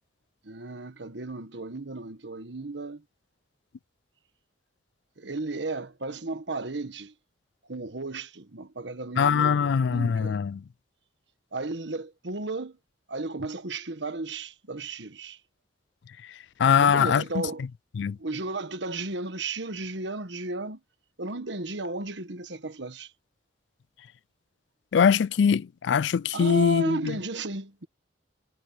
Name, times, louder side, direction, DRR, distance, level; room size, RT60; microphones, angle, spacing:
voice 1, 0.4-3.0 5.2-7.1 7.7-10.4 11.5-12.8 13.1-15.4 16.7-17.6 18.2-20.8 21.2-23.1 26.3-27.9, right 3 dB, 80° right, 1.4 m, -34 dB
voice 2, 9.2-10.6 16.6-17.4 18.0-18.2 24.9-27.2, left 6 dB, 80° left, 0.4 m, -22 dB
head